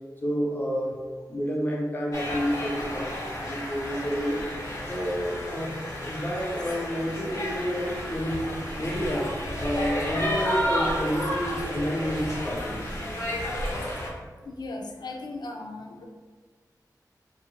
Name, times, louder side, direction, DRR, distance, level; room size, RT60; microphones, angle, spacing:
voice 1, 0.2-1.0 1.3-4.4 4.9-5.8 6.1-9.3 9.6-12.8, equal, 30° left, -3 dB, 0.7 m, -29 dB
sound 1, 2.1-14.1, equal, 45° left, 1.0 m, -31 dB
voice 2, 14.4-16.0, left 2 dB, 90° left, 3 dB, 0.4 m, -37 dB
2.8 x 2.5 x 2.8 m, 1.4 s
wide cardioid pair, 65°, 7 cm